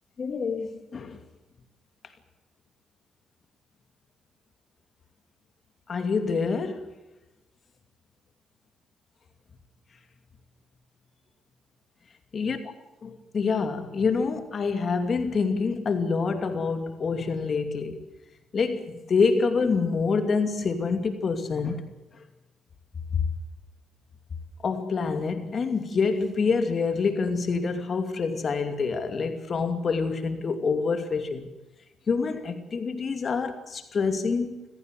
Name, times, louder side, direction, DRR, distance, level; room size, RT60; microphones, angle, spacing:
voice 1, 0.2-1.2 5.9-6.9 12.3-12.6 13.0-18.0 18.5-21.9 24.6-31.5 32.1-34.7, left 4 dB, 45° left, 2.6 m, -26 dB
26.0 x 16.0 x 7.8 m
cardioid pair, 90°, 0 cm